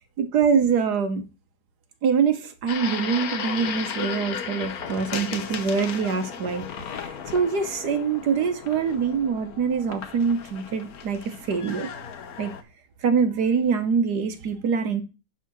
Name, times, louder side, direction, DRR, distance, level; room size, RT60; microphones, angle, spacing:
voice 1, 0.2-1.2 2.0-6.6 7.3-11.2 11.5-11.9 12.4-12.5 13.0-15.0, right 6 dB, 60° right, 1.4 m, -24 dB
sound 1, 2.7-12.6, left 7 dB, 55° left, 1.1 m, -35 dB
11.0 x 3.7 x 6.0 m
omnidirectional pair, 2.3 m